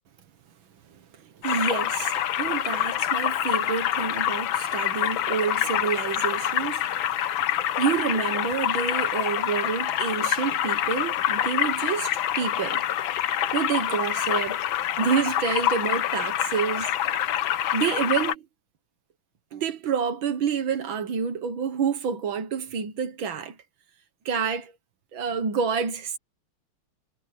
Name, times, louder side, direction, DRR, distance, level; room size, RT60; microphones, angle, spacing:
voice 1, 0.9-7.2 7.8-12.9 13.5-14.7 15.0-16.9 17.7-18.5 19.5-23.6 24.3-24.7 25.1-26.2, right 6 dB, 65° right, 2.1 m, -28 dB
sound 1, 1.4-18.3, left 11 dB, 70° left, 1.6 m, -26 dB
omnidirectional pair, 2.4 m